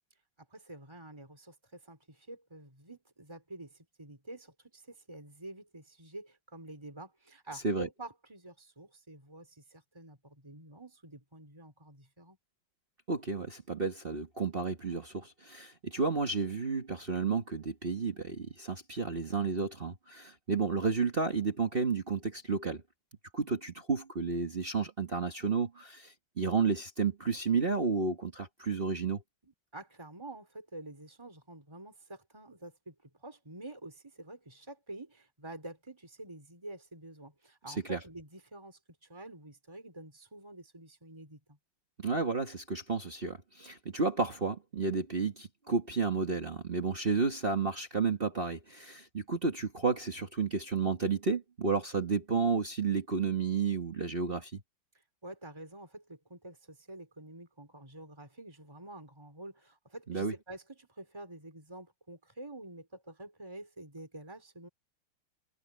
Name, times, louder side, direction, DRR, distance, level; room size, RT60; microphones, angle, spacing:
voice 1, 0.5-12.4 29.4-41.6 55.2-64.7, right 1 dB, 15° right, 4.6 m, -48 dB
voice 2, 13.1-22.8 23.3-29.2 37.7-38.0 42.0-54.6 60.1-60.3, right 4 dB, 30° right, 1.5 m, -32 dB
omnidirectional pair, 2.2 m